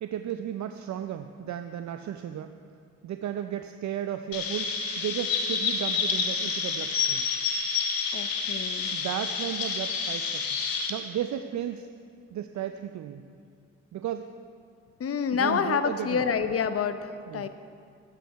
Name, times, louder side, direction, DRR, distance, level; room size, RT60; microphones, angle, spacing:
voice 1, 0.0-2.5 3.0-7.3 8.9-10.4 10.9-11.9 12.3-13.2 13.9-14.3 15.4-16.2 17.3-17.5, right 10 dB, 50° right, 8 dB, 0.6 m, -34 dB
Chirp tweet, 4.3-10.9, left 5 dB, 70° left, 1.3 m, -29 dB
voice 2, 8.1-8.9 15.0-17.5, left 6 dB, 40° left, 11 dB, 0.8 m, -28 dB
12.0 x 9.0 x 4.7 m, 2.3 s
hypercardioid pair, 45°, 36 cm